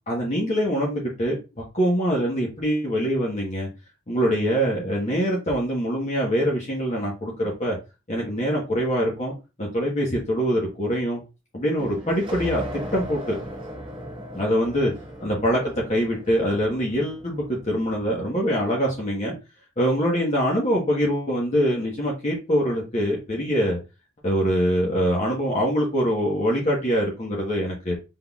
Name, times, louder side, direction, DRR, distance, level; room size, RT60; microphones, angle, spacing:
voice 1, 0.1-3.7 4.1-7.8 8.1-9.3 9.6-11.2 11.5-12.6 12.9-13.4 14.3-14.9 15.2-19.3 19.8-23.8 24.2-27.9, equal, 35° left, -3 dB, 1.2 m, -24 dB
sound 1, 11.8-18.1, equal, 25° right, 1.2 m, -37 dB
5.6 x 3.7 x 2.4 m, 0.28 s
head